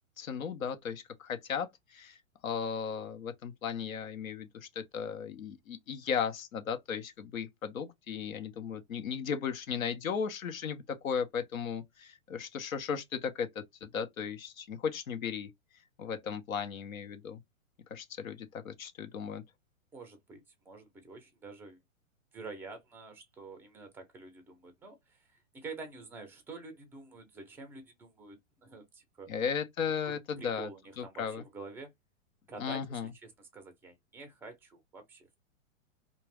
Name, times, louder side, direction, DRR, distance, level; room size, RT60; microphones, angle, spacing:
voice 1, 0.2-2.2 2.4-15.5 16.0-17.4 17.9-19.4 29.3-30.7 31.0-31.4 32.6-33.1, left 7 dB, 85° left, 0.8 m, -36 dB
voice 2, 19.9-21.8 22.3-29.3 30.0-31.9 32.5-35.3, right 3 dB, 5° right, 0.5 m, -48 dB
2.4 x 2.2 x 3.2 m
hypercardioid pair, 125°, 40 cm